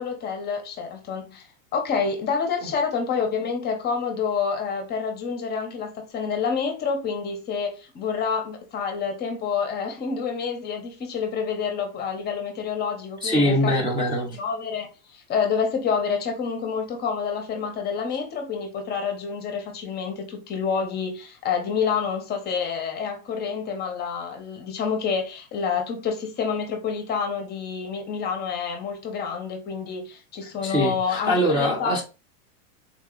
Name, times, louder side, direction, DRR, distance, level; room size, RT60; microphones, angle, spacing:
voice 1, 0.0-13.9 14.3-32.0, left 6 dB, 25° left, 0.7 m, -28 dB
voice 2, 13.2-14.4 30.6-32.0, equal, 10° right, 0.6 m, -23 dB
3.8 x 2.3 x 3.7 m
supercardioid pair, 135°, 44 cm